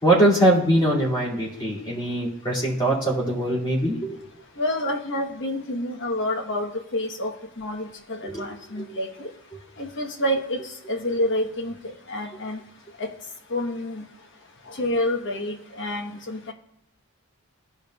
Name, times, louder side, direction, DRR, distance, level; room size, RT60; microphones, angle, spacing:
voice 1, 0.0-4.2 8.2-8.5 8.8-8.9, right 1 dB, 20° left, -7 dB, 2.7 m, -22 dB
voice 2, 4.6-9.3 9.8-10.6 10.9-12.6 13.0-13.1 13.5-14.0 14.7-16.5, left 1 dB, 60° left, 3 dB, 1.3 m, -28 dB
15.0 x 5.2 x 2.4 m, 0.82 s
head